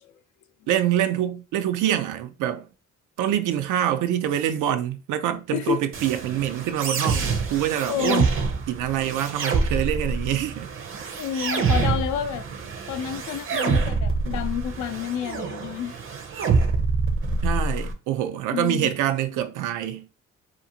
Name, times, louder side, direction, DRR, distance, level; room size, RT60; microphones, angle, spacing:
voice 1, 0.7-2.7 3.2-8.3 8.7-10.7 17.4-20.1, right 11 dB, 85° right, 0.5 m, -25 dB
sound 1, 5.9-17.9, right 4 dB, 45° right, 0.6 m, -26 dB
voice 2, 7.9-8.2 11.2-12.5 12.9-16.0 18.5-18.9, left 9 dB, 80° left, 0.5 m, -29 dB
2.5 x 2.4 x 2.7 m
cardioid pair, 90°, 30 cm